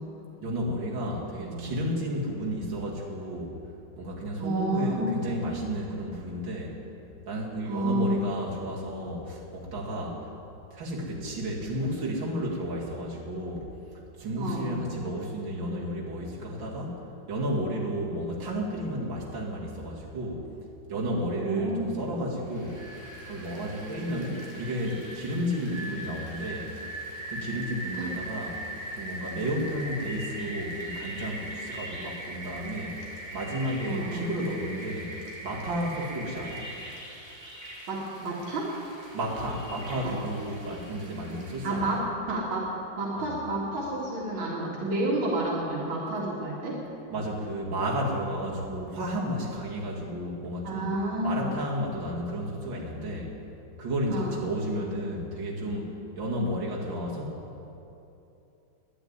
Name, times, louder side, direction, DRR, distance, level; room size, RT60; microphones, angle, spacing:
voice 1, 0.4-3.6 4.0-6.8 7.3-10.3 10.7-13.7 14.2-17.0 17.3-20.4 20.9-22.9 23.2-26.7 27.3-28.6 28.9-33.0 33.3-35.1 35.4-36.6 39.1-41.9 43.1-43.3 47.1-50.9 51.2-53.3 53.8-57.4, equal, 70° right, -4 dB, 2.9 m, -32 dB
voice 2, 1.3-1.7 4.4-5.5 7.6-8.5 14.4-14.8 21.3-22.0 28.0-28.1 33.8-34.3 37.9-38.7 40.0-40.1 41.6-46.8 50.6-51.5 54.1-54.4, right 1 dB, 85° right, -3 dB, 2.8 m, -30 dB
Rain, 22.5-42.0, right 1 dB, 15° right, 2.6 m, -41 dB
11.5 x 10.0 x 9.6 m, 2.8 s
omnidirectional pair, 2.2 m